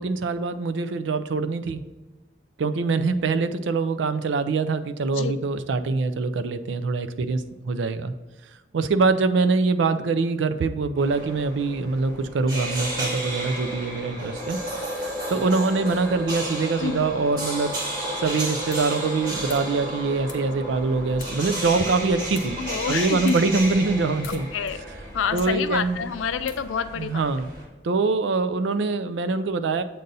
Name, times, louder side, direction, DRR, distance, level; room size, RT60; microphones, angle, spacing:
voice 1, 0.0-1.8 2.6-8.1 8.7-14.6 15.3-17.7 18.2-22.6 22.9-24.5 25.3-26.0 27.0-27.5 27.8-29.8, right 3 dB, 70° right, 10 dB, 0.4 m, -24 dB
sound 1, 11.0-27.6, right 1 dB, 45° right, 2.0 m, -32 dB
sound 2, 18.6-27.2, left 5 dB, 45° left, 0.9 m, -49 dB
voice 2, 22.6-23.4 24.3-24.9 25.1-27.2, left 6 dB, 85° left, 12 dB, 0.4 m, -28 dB
7.8 x 2.6 x 5.3 m, 1.2 s
head